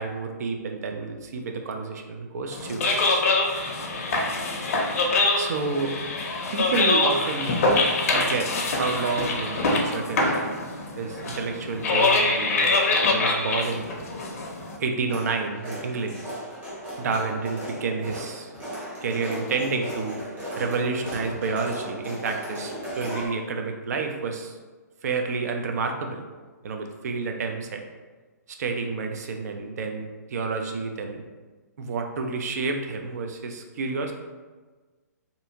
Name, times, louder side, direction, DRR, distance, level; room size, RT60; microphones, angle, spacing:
voice 1, 0.0-2.9 5.3-6.0 6.5-7.6 8.1-10.3 11.0-13.8 14.8-16.2 17.0-18.5 19.0-20.2 20.6-24.6 25.0-26.2 26.6-27.8 28.6-31.2 31.8-34.1, right 4 dB, 60° right, 4 dB, 0.4 m, -29 dB
sound 1, 2.5-14.8, left 2 dB, 55° left, 0.5 m, -24 dB
sound 2, 15.1-23.3, equal, 20° right, 1.0 m, -36 dB
2.7 x 2.5 x 2.6 m, 1.3 s
hypercardioid pair, 135°, 10 cm